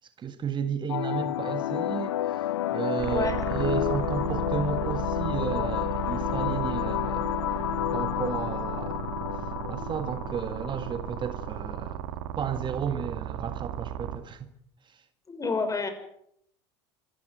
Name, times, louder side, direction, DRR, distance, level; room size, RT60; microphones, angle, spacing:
voice 1, 0.2-2.4 2.7-7.3 7.9-9.0 9.7-12.0 12.4-14.5 14.8-15.0, right 6 dB, 30° right, 1.8 m, -33 dB
sound 1, 0.9-11.9, left 13 dB, 75° left, 0.8 m, -30 dB
sound 2, 3.0-14.2, right 11 dB, 65° right, 2.3 m, -35 dB
voice 2, 3.1-3.4 15.3-15.9, left 3 dB, 20° left, 5.8 m, -28 dB
25.5 x 13.5 x 9.4 m
hypercardioid pair, 75°, 15 cm